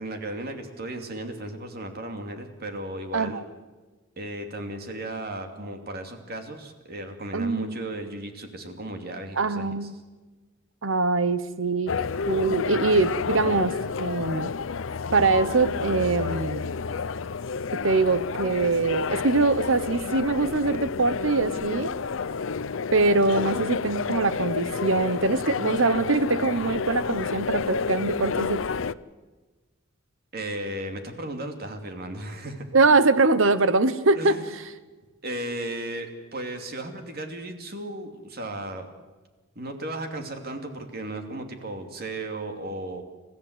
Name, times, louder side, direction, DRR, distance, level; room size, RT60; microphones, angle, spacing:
voice 1, 0.0-3.4 4.2-9.9 30.3-32.7 34.2-34.5 35.2-38.9 39.5-43.0, right 1 dB, 50° right, 5 dB, 2.7 m, -35 dB
voice 2, 3.1-3.4 7.3-7.8 9.3-9.9 10.8-11.9 12.3-14.5 15.1-16.7 17.8-21.9 22.9-28.6 32.7-34.6, right 3 dB, 85° right, 14 dB, 1.1 m, -23 dB
sound 1, 11.9-28.9, left 5 dB, 80° left, 0.6 m, -30 dB
29.5 x 15.0 x 8.2 m, 1.3 s
head